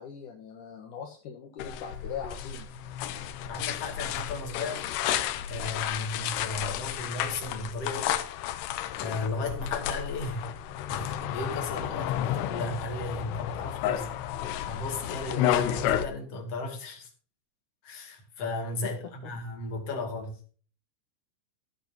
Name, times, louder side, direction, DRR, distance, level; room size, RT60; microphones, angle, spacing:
voice 1, 0.0-2.7 18.8-18.9, left 7 dB, 60° left, 2 dB, 2.2 m, -41 dB
sound 1, 1.6-16.1, left 11 dB, 75° left, 2.8 m, -32 dB
voice 2, 3.5-4.9 5.5-8.2 9.0-10.5 10.9-14.1 14.4-17.1 17.8-20.4, left 2 dB, 40° left, 2 dB, 3.0 m, -35 dB
15.5 x 8.9 x 2.9 m, 0.40 s
omnidirectional pair, 5.0 m